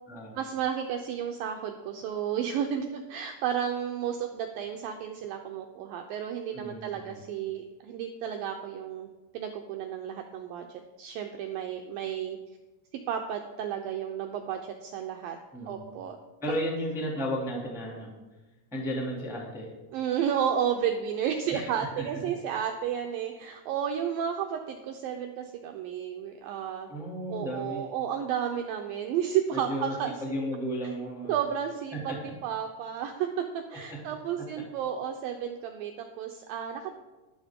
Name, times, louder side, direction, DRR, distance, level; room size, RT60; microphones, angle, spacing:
voice 1, 0.4-9.1 9.3-10.7 11.0-12.4 13.1-15.4 15.7-16.2 19.9-26.9 27.3-30.1 31.3-37.0, right 9 dB, 90° right, 4 dB, 2.0 m, -32 dB
voice 2, 6.5-7.2 15.5-15.8 16.4-18.1 18.7-19.7 21.5-22.0 26.9-27.9 29.5-31.3 31.9-32.3 33.9-34.0, equal, ahead, -3 dB, 1.2 m, -34 dB
12.5 x 11.5 x 3.6 m, 1.1 s
omnidirectional pair, 5.0 m